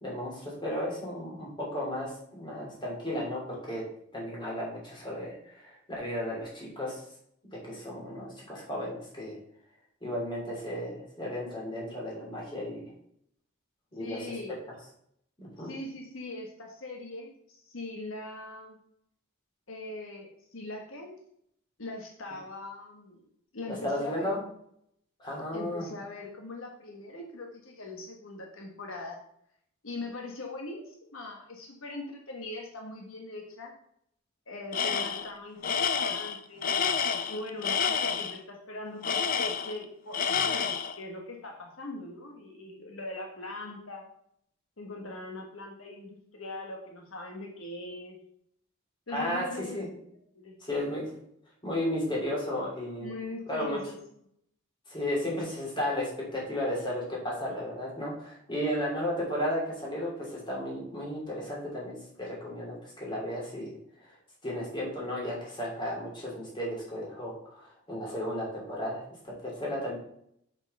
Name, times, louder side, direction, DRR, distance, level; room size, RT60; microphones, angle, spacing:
voice 1, 0.0-3.8 4.1-7.0 7.5-9.4 10.0-12.8 13.9-14.4 15.4-15.7 23.7-24.4 25.2-25.9 49.1-49.9 50.6-51.1 51.6-53.1 53.5-53.8 54.9-63.8 64.0-64.2 64.4-70.0, left 1 dB, 25° left, -4 dB, 2.8 m, -34 dB
voice 2, 14.0-14.5 15.6-18.8 19.7-21.2 21.8-23.2 23.5-24.3 25.5-29.2 29.8-33.7 34.5-40.7 40.9-44.0 44.8-48.2 49.1-49.8 50.3-50.6 53.0-53.9, left 2 dB, 80° left, 1 dB, 1.4 m, -41 dB
Tools, 34.7-35.3 35.6-38.4 39.0-39.8 40.1-41.0, left 6 dB, 40° left, 0.5 m, -29 dB
6.0 x 5.7 x 5.4 m, 0.70 s
head